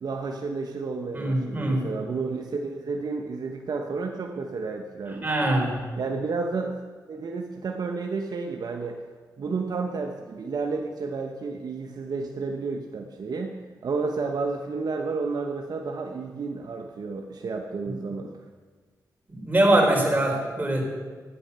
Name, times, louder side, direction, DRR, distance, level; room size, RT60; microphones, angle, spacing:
voice 1, 0.0-5.5 6.0-6.7 7.1-9.0 9.4-13.6 13.8-18.3, right 4 dB, 65° right, 3 dB, 1.0 m, -31 dB
voice 2, 1.1-1.9 5.2-5.8 19.3-21.0, right 1 dB, 25° right, 0 dB, 4.3 m, -23 dB
12.5 x 9.8 x 6.8 m, 1.4 s
cardioid pair, 65°, 7 cm